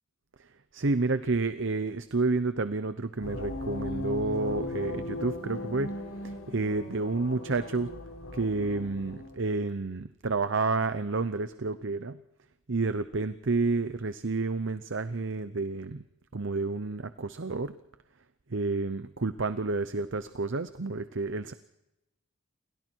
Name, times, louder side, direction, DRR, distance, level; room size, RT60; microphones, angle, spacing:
voice 1, 0.4-5.9 6.2-7.9 8.3-12.2 12.7-16.0 16.3-17.8 18.5-21.5, right 3 dB, 55° right, 12 dB, 0.8 m, -30 dB
sound 1, 3.2-9.4, left 2 dB, 65° left, 4.3 m, -37 dB
29.5 x 23.0 x 4.6 m, 0.95 s
head